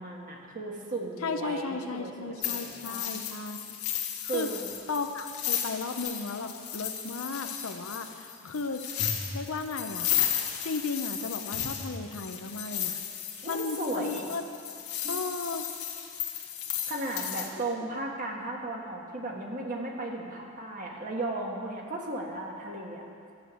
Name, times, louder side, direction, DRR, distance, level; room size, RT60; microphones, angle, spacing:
voice 1, 0.0-3.2 4.2-4.7 13.4-14.3 15.0-15.2 16.9-23.0, right 2 dB, 40° right, 0 dB, 1.5 m, -35 dB
voice 2, 1.2-3.8 4.3-4.5 4.9-8.8 9.3-10.1 10.6-13.0 13.5-14.4 15.1-15.7, left 4 dB, 70° left, 7 dB, 0.7 m, -35 dB
sound 1, 2.4-17.5, left 9 dB, 90° left, 1.6 m, -34 dB
13.0 x 8.6 x 6.3 m, 2.4 s
head